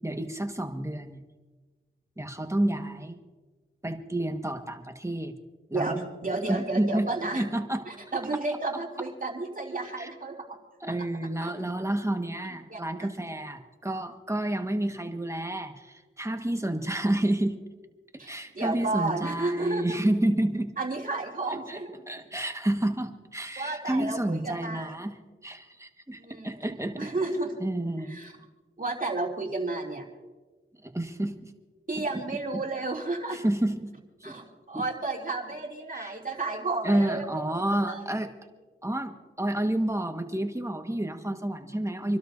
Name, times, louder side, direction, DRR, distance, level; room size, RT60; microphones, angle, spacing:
voice 1, 0.0-1.2 2.2-3.2 3.8-5.3 5.7-6.0 6.5-7.8 10.0-10.1 10.8-17.6 18.3-20.7 21.7-21.8 22.1-25.2 25.4-27.1 27.6-28.2 30.8-31.5 33.3-33.9 34.2-34.3 34.7-34.8 35.9-36.1 36.8-38.3 38.8-42.2, right 1 dB, 15° right, 5 dB, 1.5 m, -30 dB
voice 2, 5.7-7.4 7.9-10.6 10.9-11.0 11.4-11.5 12.7-13.1 18.2-20.0 20.8-21.9 23.6-25.0 26.2-26.7 27.0-27.6 28.1-28.3 28.8-30.0 31.9-33.4 34.2-38.0, right 2 dB, 40° right, -1 dB, 3.0 m, -32 dB
28.0 x 12.5 x 2.7 m, 1.3 s
cardioid pair, 45°, 21 cm